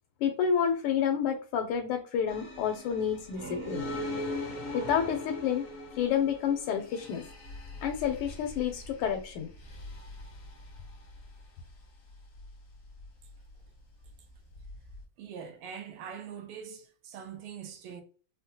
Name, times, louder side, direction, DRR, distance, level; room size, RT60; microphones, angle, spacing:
voice 1, 0.2-3.8 4.7-5.7 6.0-7.2 7.8-9.5, left 8 dB, 90° left, 1.5 m, -29 dB
sound 1, 2.3-15.0, left 2 dB, 65° left, 0.8 m, -42 dB
sound 2, 3.0-6.6, right 3 dB, 60° right, 1.0 m, -45 dB
voice 2, 15.2-18.0, right 7 dB, 90° right, 1.7 m, -43 dB
4.2 x 2.1 x 2.7 m
omnidirectional pair, 2.4 m